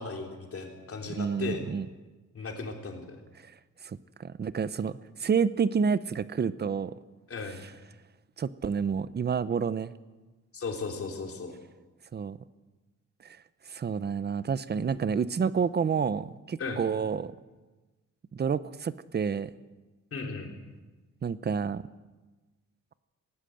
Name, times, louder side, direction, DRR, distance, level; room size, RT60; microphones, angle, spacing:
voice 1, 0.0-1.6 2.3-3.2 7.3-7.6 10.5-11.5 16.6-16.8 20.1-20.5, left 4 dB, 45° left, 2 dB, 3.6 m, -36 dB
voice 2, 1.2-1.9 3.8-6.9 8.4-9.9 12.1-12.4 13.7-17.3 18.3-19.5 21.2-21.8, right 6 dB, 35° right, 16 dB, 0.7 m, -29 dB
18.5 x 18.5 x 7.8 m, 1.2 s
wide cardioid pair, 155°, 31 cm